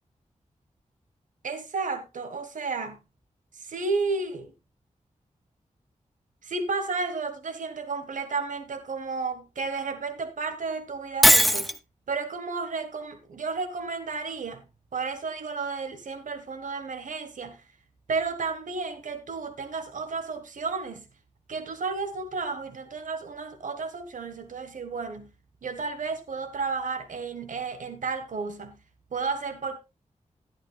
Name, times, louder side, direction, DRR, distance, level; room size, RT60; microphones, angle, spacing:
voice 1, 1.4-3.0 3.5-4.5 6.4-11.7 12.1-14.6 14.9-17.6 18.1-21.1 21.5-25.3 25.6-28.8 29.1-29.8, right 4 dB, 85° right, 1.6 m, -32 dB
Shatter, 11.2-11.8, equal, ahead, 0.6 m, -18 dB
14.0 x 11.0 x 2.4 m
wide cardioid pair, 145°, 13 cm